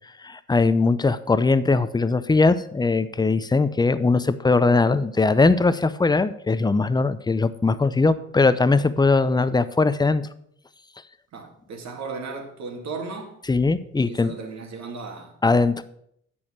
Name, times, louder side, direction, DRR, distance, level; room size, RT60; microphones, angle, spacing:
voice 1, 0.2-10.3 13.5-14.3 15.4-15.8, left 3 dB, 15° left, 0.6 m, -20 dB
voice 2, 11.3-13.4 14.1-15.4, right 4 dB, 65° right, 2.4 m, -35 dB
9.1 x 6.3 x 6.6 m
cardioid pair, 90°, 30 cm